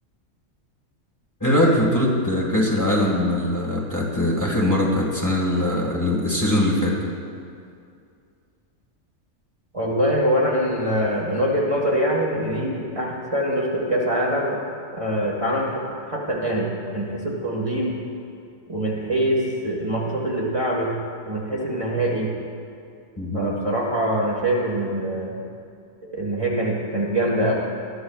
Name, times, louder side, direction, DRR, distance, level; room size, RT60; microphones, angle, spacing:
voice 1, 1.4-6.9 23.2-23.5, left 1 dB, 15° left, -4 dB, 1.7 m, -21 dB
voice 2, 9.7-14.6 15.0-17.9 18.7-20.9 21.2-22.3 23.3-25.3 26.1-27.5, right 1 dB, 25° right, -3 dB, 1.6 m, -24 dB
21.0 x 12.5 x 2.4 m, 2.4 s
omnidirectional pair, 1.3 m